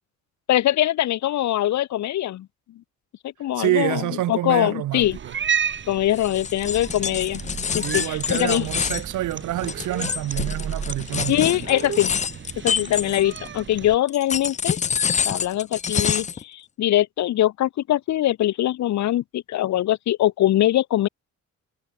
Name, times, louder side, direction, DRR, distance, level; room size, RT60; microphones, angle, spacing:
voice 1, 0.5-2.5 3.4-4.0 4.3-5.2 5.9-7.4 7.7-8.7 11.3-12.2 12.6-14.8 15.2-21.1, left 13 dB, 65° left, 0.9 m, -22 dB
voice 2, 3.6-5.3 7.8-11.6, right 15 dB, 80° right, 1.4 m, -27 dB
Cat, 5.0-14.0, right 7 dB, 40° right, 1.2 m, -32 dB
sound 1, 6.1-13.6 14.1-16.4, left 7 dB, 25° left, 0.4 m, -27 dB
cardioid pair, 90°, 30 cm